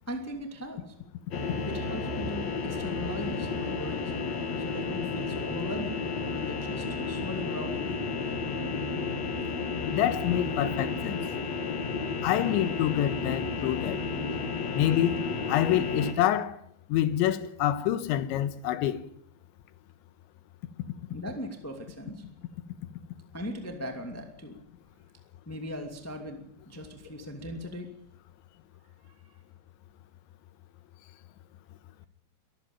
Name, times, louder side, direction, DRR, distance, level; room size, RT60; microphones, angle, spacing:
voice 1, 0.1-0.9 1.6-4.1 4.6-6.0 6.3-8.4 21.1-22.2 23.3-24.6 25.4-27.9 29.0-29.4, equal, 10° left, 0.8 m, -39 dB
sound 1, 1.3-16.1, left 4 dB, 45° left, 2.8 m, -32 dB
voice 2, 9.9-11.2 12.2-14.1 14.7-15.2 15.5-16.6 16.9-19.0, left 12 dB, 85° left, 3.5 m, -27 dB
23.5 x 14.5 x 8.9 m
omnidirectional pair, 5.2 m